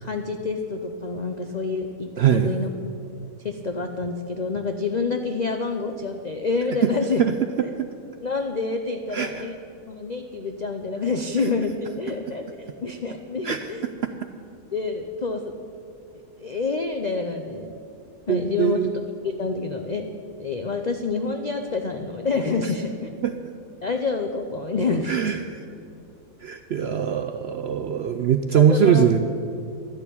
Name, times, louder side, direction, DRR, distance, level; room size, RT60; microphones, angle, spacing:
voice 1, 0.0-2.7 3.4-7.2 7.6-7.7 8.2-9.6 9.9-13.9 14.7-15.5 16.4-17.8 18.3-18.9 19.2-20.1 20.4-23.1 23.8-25.1 28.5-29.0, left 4 dB, 65° left, 5 dB, 0.4 m, -27 dB
voice 2, 2.2-2.5 6.8-6.9 7.2-7.9 9.1-9.4 13.4-13.6 18.3-18.9 23.2-23.3 25.1-25.6 26.4-29.2, right 8 dB, 75° right, 7 dB, 0.5 m, -21 dB
12.0 x 7.0 x 9.9 m, 2.5 s
omnidirectional pair, 1.7 m